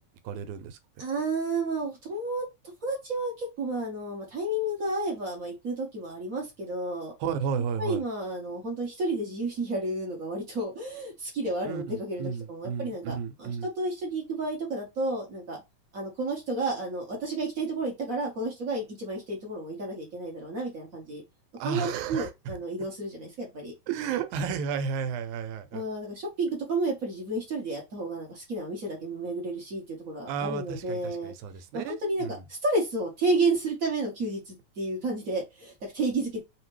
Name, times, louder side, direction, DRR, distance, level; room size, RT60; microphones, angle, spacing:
voice 1, 0.2-0.8 7.2-8.0 11.7-13.7 21.6-22.3 23.9-25.8 30.3-32.4, right 7 dB, 85° right, 2.0 m, -33 dB
voice 2, 1.0-2.4 2.8-7.1 7.8-15.6 15.9-21.2 21.6-23.7 25.7-31.3 31.7-36.4, right 2 dB, 65° right, 0.8 m, -31 dB
5.5 x 2.8 x 3.1 m
omnidirectional pair, 3.4 m